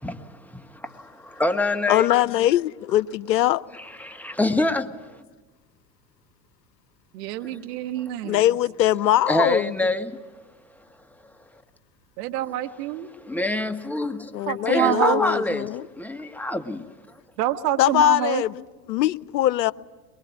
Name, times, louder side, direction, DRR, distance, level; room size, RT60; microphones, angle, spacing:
voice 1, 0.0-2.1 4.0-4.9 7.5-7.6 9.3-10.2 13.2-15.7 16.0-16.9, left 1 dB, 5° left, 1.5 m, -26 dB
voice 2, 1.9-3.6 8.2-9.8 14.3-15.9 17.8-18.6 18.9-19.7, left 13 dB, 80° left, 0.7 m, -21 dB
voice 3, 7.1-8.5 12.2-13.1 14.5-15.2 17.4-18.4, right 13 dB, 70° right, 1.6 m, -26 dB
23.5 x 22.0 x 9.5 m
hypercardioid pair, 85°, 50 cm